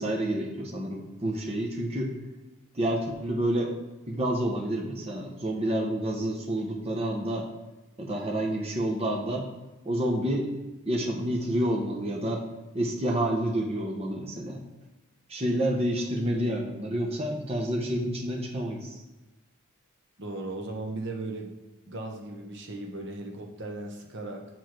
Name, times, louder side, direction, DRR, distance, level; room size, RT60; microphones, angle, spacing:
voice 1, 0.0-2.1 2.7-3.7 4.1-7.5 8.0-9.5 9.8-10.5 10.8-12.4 12.7-14.6 15.3-19.0, right 1 dB, 30° right, -1 dB, 1.1 m, -29 dB
voice 2, 20.2-21.6 21.9-24.5, right 2 dB, 55° right, 2 dB, 1.0 m, -37 dB
7.7 x 4.7 x 4.5 m, 1.1 s
head